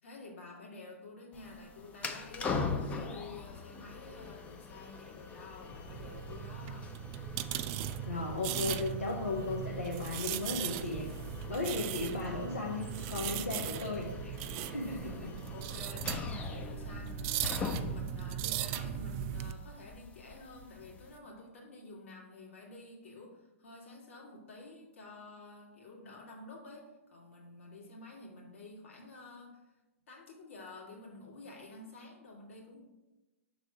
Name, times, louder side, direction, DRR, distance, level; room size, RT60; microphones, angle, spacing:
voice 1, 0.0-6.9 15.5-29.7 30.1-32.8, left 2 dB, 70° left, -3 dB, 2.3 m, -50 dB
sound 1, 1.3-21.2, left 4 dB, 15° left, 0.6 m, -43 dB
sound 2, 5.9-19.5, right 10 dB, 35° right, 0.3 m, -38 dB
voice 2, 8.1-11.1 11.5-14.3 14.6-15.3, left 3 dB, 90° left, -4 dB, 1.1 m, -36 dB
6.2 x 4.0 x 5.9 m, 1.1 s
figure-of-eight pair, 115°, 7 cm